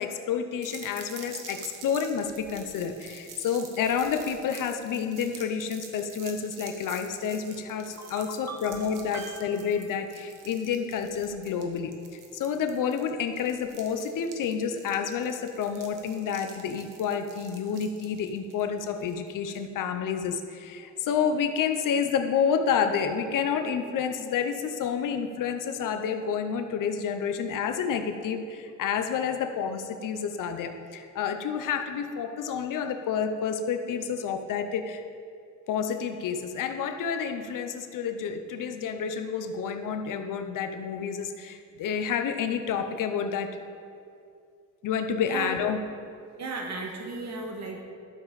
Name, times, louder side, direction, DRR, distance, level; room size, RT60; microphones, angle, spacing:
voice 1, 0.0-11.9 12.3-35.0 35.7-43.6 44.8-45.8, left 7 dB, 85° left, 6 dB, 0.7 m, -29 dB
sound 1, 0.6-19.7, right 5 dB, 85° right, 1.3 m, -47 dB
voice 2, 7.7-9.7 45.2-45.5 46.3-47.8, right 3 dB, 60° right, 1 dB, 1.7 m, -38 dB
12.5 x 7.0 x 4.1 m, 2.4 s
cardioid pair, 110°, 31 cm